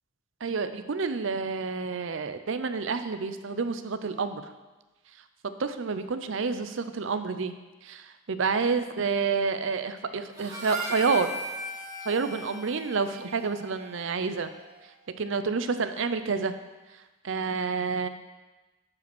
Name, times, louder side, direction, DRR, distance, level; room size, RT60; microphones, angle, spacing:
voice 1, 0.4-4.4 5.6-7.5 7.8-11.3 12.0-14.5 15.2-16.5 16.9-18.1, right 4 dB, 70° right, 10 dB, 0.6 m, -29 dB
Harmonica, 10.4-14.8, equal, 15° right, 2.4 m, -39 dB
8.6 x 5.2 x 6.0 m, 1.2 s
head